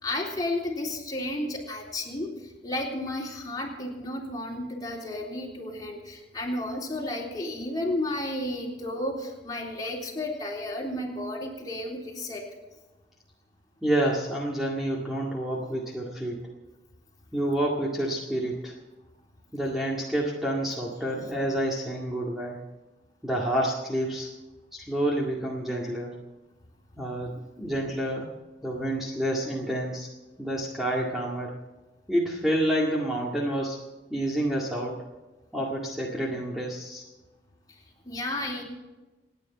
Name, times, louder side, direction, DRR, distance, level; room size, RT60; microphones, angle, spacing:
voice 1, 0.0-12.4 37.7-37.8 38.0-38.6, left 1 dB, 20° left, -2 dB, 3.6 m, -32 dB
voice 2, 13.8-16.5 17.3-18.7 19.5-22.6 23.2-24.3 24.7-26.2 27.0-27.3 27.6-28.3 28.6-30.1 30.4-31.6 32.1-33.8 34.1-35.0 35.5-37.0, right 1 dB, ahead, -4 dB, 2.0 m, -28 dB
28.5 x 9.7 x 4.3 m, 1.1 s
head